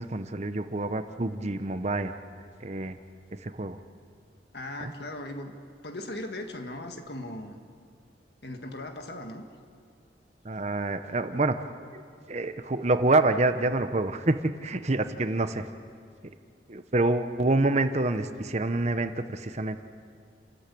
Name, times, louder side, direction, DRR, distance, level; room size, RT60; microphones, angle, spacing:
voice 1, 0.0-2.2 2.6-3.0 3.4-3.8 4.8-4.9 10.4-11.6 11.9-15.7 16.7-19.8, right 2 dB, 40° right, 9 dB, 0.9 m, -27 dB
voice 2, 4.5-5.5 5.8-7.6 8.4-9.4, left 1 dB, 60° left, 5 dB, 1.8 m, -38 dB
29.0 x 14.0 x 8.5 m, 2.2 s
head